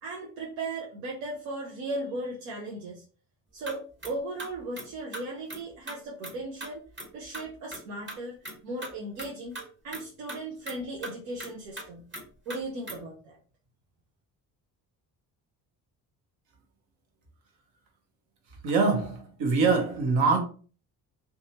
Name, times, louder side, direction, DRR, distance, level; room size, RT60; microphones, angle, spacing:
voice 1, 0.0-3.0 3.5-6.8 7.1-8.4 8.6-9.6 9.8-12.1 12.5-13.4, right 2 dB, 85° right, 0.6 m, -37 dB
sound 1, 3.7-3.8 4.0-4.1 4.4-4.9 5.1-5.2 5.5-5.6 5.9-6.0 6.2-6.3 6.6-6.7 7.0-7.1 7.3-7.8 8.1-8.2 8.5-8.6 8.8-8.9 9.2-9.3 9.6-9.7 9.9-10.0 10.3-10.4 10.7-10.8 11.0-11.1 11.4-11.5 11.8-11.9 12.1-12.2 12.5-12.6 12.9-13.0, right 1 dB, 25° right, 1.2 m, -38 dB
voice 2, 18.6-20.4, right 4 dB, 65° right, 1.0 m, -24 dB
2.6 x 2.3 x 2.8 m
hypercardioid pair, 45°, 49 cm